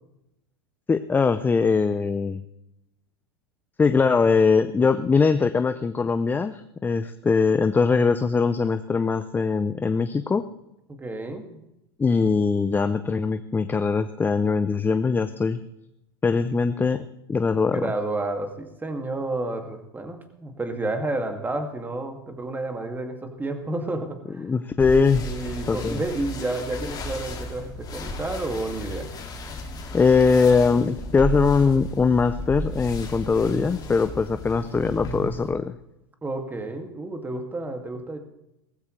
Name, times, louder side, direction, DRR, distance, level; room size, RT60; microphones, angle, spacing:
voice 1, 0.9-2.4 3.8-10.5 12.0-15.6 16.2-17.9 24.4-25.3 25.7-26.0 29.9-35.8, left 4 dB, 15° left, 11 dB, 0.6 m, -21 dB
voice 2, 10.9-11.6 17.7-24.5 25.2-29.1 36.2-38.2, right 2 dB, 15° right, 5 dB, 2.3 m, -30 dB
sound 1, 24.8-35.5, equal, 30° left, 2.5 m, -34 dB
18.0 x 15.0 x 3.3 m, 0.88 s
hypercardioid pair, 95°, 13 cm